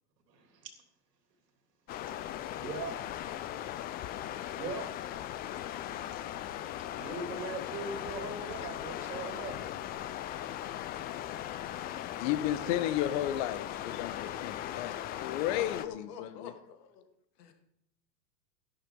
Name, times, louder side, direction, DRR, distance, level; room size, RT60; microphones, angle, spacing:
voice 1, 0.3-0.7 2.6-2.9 4.5-4.9 7.0-9.6, right 3 dB, 75° right, 3.1 m, -39 dB
sound 1, 1.9-15.8, left 12 dB, 20° left, 0.4 m, -39 dB
voice 2, 12.2-15.8 16.2-16.5, left 12 dB, 40° left, 1.1 m, -33 dB
voice 3, 15.6-17.1 17.4-17.5, left 8 dB, 70° left, 2.3 m, -45 dB
13.0 x 11.5 x 3.9 m
hypercardioid pair, 105°, 49 cm